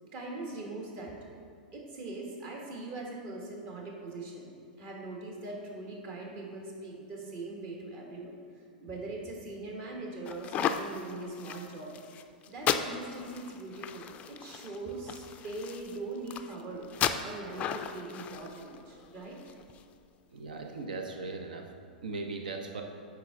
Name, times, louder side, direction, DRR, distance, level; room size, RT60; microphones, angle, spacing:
voice 1, 0.0-1.1 1.7-12.0 12.5-16.9 17.2-19.5, right 2 dB, 40° right, -1 dB, 1.6 m, -41 dB
sound 1, 10.3-19.8, left 8 dB, 30° left, 0.4 m, -36 dB
voice 2, 20.3-21.6 22.0-22.8, right 3 dB, 70° right, 3 dB, 0.8 m, -38 dB
8.8 x 4.6 x 3.8 m, 2.2 s
figure-of-eight pair, 100°, 5 cm